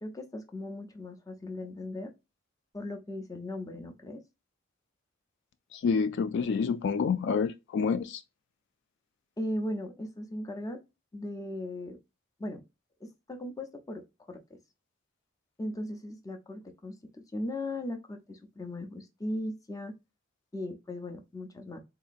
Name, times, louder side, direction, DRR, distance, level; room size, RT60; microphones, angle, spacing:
voice 1, 0.0-2.1 2.7-4.2 9.4-10.8 11.1-12.0 12.4-12.6 13.0-14.6 15.6-19.9 20.5-21.8, left 1 dB, 15° left, 0.6 m, -38 dB
voice 2, 5.7-8.2, left 5 dB, 60° left, 0.3 m, -28 dB
3.9 x 2.8 x 2.4 m
head